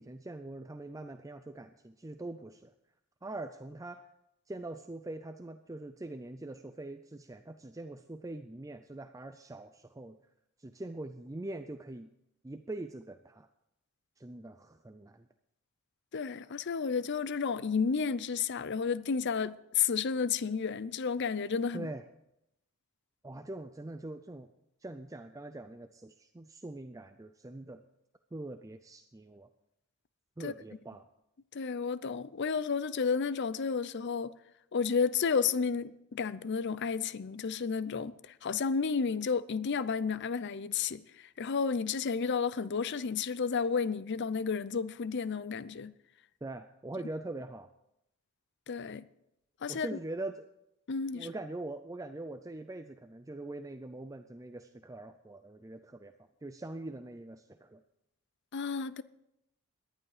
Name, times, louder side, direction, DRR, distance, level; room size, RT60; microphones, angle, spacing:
voice 1, 0.0-2.7 3.2-4.1 4.5-10.2 10.6-12.1 12.4-13.5 14.2-15.3 21.7-22.0 23.2-24.5 24.8-27.8 28.3-29.5 30.4-31.1 46.4-47.7 49.7-50.5 51.1-56.1 56.4-57.8, right 2 dB, 15° right, 0.4 m, -43 dB
voice 2, 16.1-21.9 30.4-30.5 31.5-34.3 34.7-45.9 48.7-49.1 49.6-50.0 50.9-51.3 58.5-59.0, left 5 dB, 50° left, 0.5 m, -32 dB
18.5 x 11.0 x 5.0 m
head